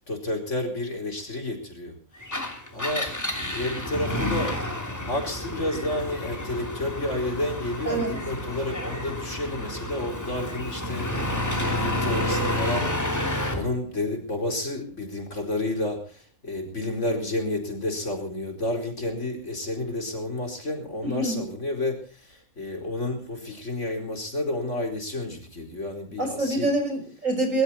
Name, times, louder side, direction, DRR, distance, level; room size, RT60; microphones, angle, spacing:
voice 1, 0.0-1.9 2.3-4.5 5.0-13.2 13.5-26.7, left 1 dB, 55° left, 2 dB, 4.9 m, -31 dB
Engine, 2.2-13.7, left 1 dB, 10° left, 3.1 m, -30 dB
voice 2, 21.0-21.4 26.2-27.6, right 2 dB, 65° right, 5 dB, 6.3 m, -26 dB
23.0 x 13.5 x 4.3 m, 0.42 s
omnidirectional pair, 1.5 m